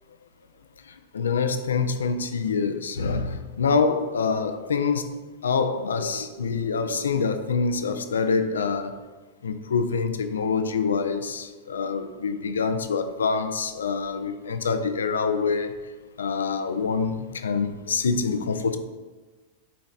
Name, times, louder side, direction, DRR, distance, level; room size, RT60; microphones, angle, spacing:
voice 1, 1.1-9.0 9.4-15.7 16.2-18.8, left 5 dB, 75° left, 0.5 m, -26 dB
10.0 x 4.1 x 2.4 m
figure-of-eight pair, 95°, 0 cm